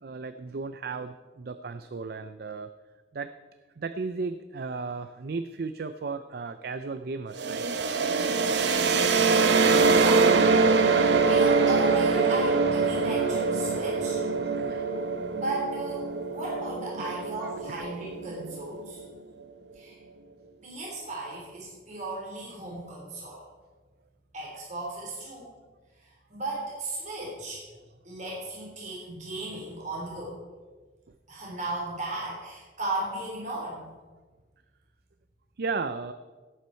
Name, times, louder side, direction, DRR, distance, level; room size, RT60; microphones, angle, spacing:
voice 1, 0.0-2.7 3.1-3.3 3.8-7.8 14.4-14.9 17.0-17.8 35.6-36.1, right 4 dB, 60° right, 10 dB, 0.5 m, -35 dB
sound 1, 7.3-19.0, right 4 dB, 80° right, 0.9 m, -24 dB
voice 2, 9.9-10.3 11.0-14.2 15.3-16.0 16.3-19.0 19.7-20.0 20.6-23.4 24.3-25.5 26.0-27.6 28.0-30.4 31.3-33.8, right 2 dB, 45° right, -4 dB, 3.4 m, -35 dB
17.0 x 8.2 x 4.5 m, 1.3 s
head